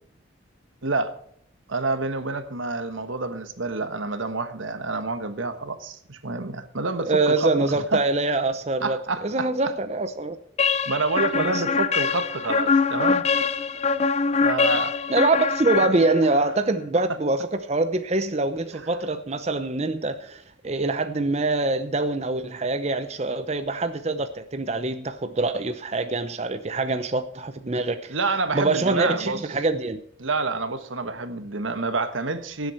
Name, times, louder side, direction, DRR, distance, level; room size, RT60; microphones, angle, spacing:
voice 1, 0.8-1.2 1.7-8.0 8.8-9.5 10.9-13.3 14.4-15.0 28.1-29.4 30.2-32.7, right 3 dB, 80° right, 1.4 m, -28 dB
voice 2, 7.1-10.4 11.4-11.6 15.1-28.1 28.5-30.0, right 2 dB, 35° right, 0.7 m, -24 dB
sound 1, 10.6-16.5, left 5 dB, 35° left, 0.5 m, -23 dB
17.5 x 7.9 x 4.5 m
head